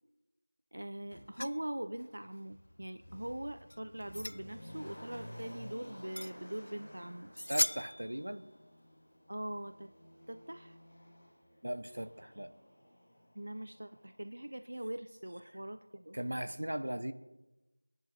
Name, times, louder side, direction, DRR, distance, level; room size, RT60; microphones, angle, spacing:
voice 1, 0.7-7.3 9.3-9.9 10.3-10.8 13.4-16.2, right 1 dB, 45° right, 10 dB, 0.5 m, -42 dB
Motor vehicle (road), 1.1-1.2 2.0-14.9 15.2-15.3, equal, 15° left, 2.3 m, -54 dB
sound 1, 1.3-1.6 3.7-4.4 6.2-6.3 6.7-6.8 7.3-8.2, left 1 dB, 60° left, 0.4 m, -36 dB
voice 2, 7.5-8.5 11.6-12.5 16.1-17.1, right 1 dB, 85° right, 12 dB, 1.0 m, -38 dB
21.0 x 11.0 x 4.2 m, 1.1 s
figure-of-eight pair, 180°, 0 cm